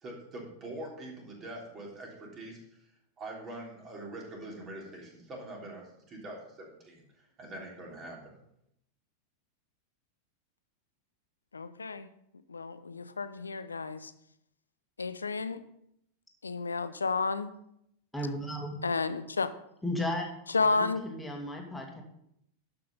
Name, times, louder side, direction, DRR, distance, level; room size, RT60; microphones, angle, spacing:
voice 1, 0.0-2.8 3.2-7.0 7.4-8.3, right 1 dB, 30° right, -1 dB, 3.3 m, -44 dB
voice 2, 11.5-12.1 12.5-14.1 15.0-15.6 16.4-17.5 18.8-19.5 20.5-21.1, left 4 dB, 75° left, 12 dB, 0.6 m, -31 dB
voice 3, 18.1-18.8 19.8-22.0, left 1 dB, 5° left, 0 dB, 2.1 m, -35 dB
11.5 x 5.8 x 5.4 m, 0.75 s
figure-of-eight pair, 90°, 0 cm